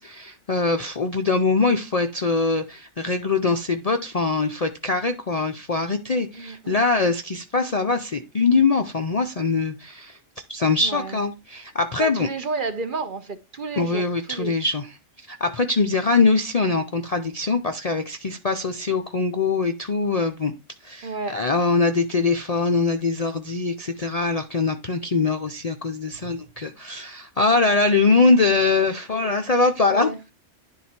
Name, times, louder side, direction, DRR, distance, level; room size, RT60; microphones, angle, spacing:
voice 1, 0.0-10.2 10.5-12.3 13.8-14.9 15.3-20.5 20.8-30.3, left 3 dB, 45° left, 0.5 m, -22 dB
voice 2, 6.3-6.8 10.8-11.2 12.0-14.6 21.0-21.4 26.2-26.3 29.9-30.2, right 4 dB, 45° right, 0.9 m, -31 dB
10.5 x 3.9 x 4.3 m
omnidirectional pair, 1.3 m